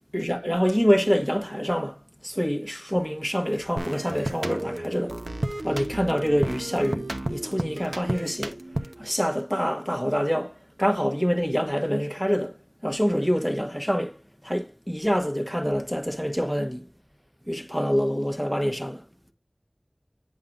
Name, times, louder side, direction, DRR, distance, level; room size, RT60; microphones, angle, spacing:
voice 1, 0.1-2.0 2.2-5.2 5.6-8.6 9.0-12.6 12.8-14.2 14.4-16.8 17.5-19.0, equal, ahead, 1.3 m, -26 dB
sound 1, 3.8-9.1, right 1 dB, 65° right, 1.0 m, -32 dB
10.0 x 5.5 x 2.5 m
wide cardioid pair, 40°, 0 cm